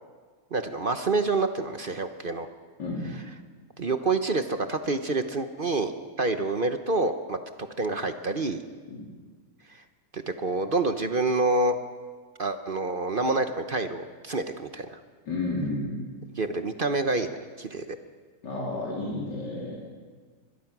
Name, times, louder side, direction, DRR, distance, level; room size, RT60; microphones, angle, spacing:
voice 1, 0.5-2.5 3.8-5.9 6.2-7.4 7.8-8.6 10.1-11.7 12.4-15.0 16.3-18.0, right 3 dB, 40° right, 8 dB, 0.9 m, -27 dB
voice 2, 2.8-3.1 8.9-9.0 15.3-16.1 18.4-19.8, left 2 dB, 80° left, -4 dB, 4.2 m, -31 dB
24.5 x 22.0 x 6.1 m, 1.5 s
omnidirectional pair, 1.9 m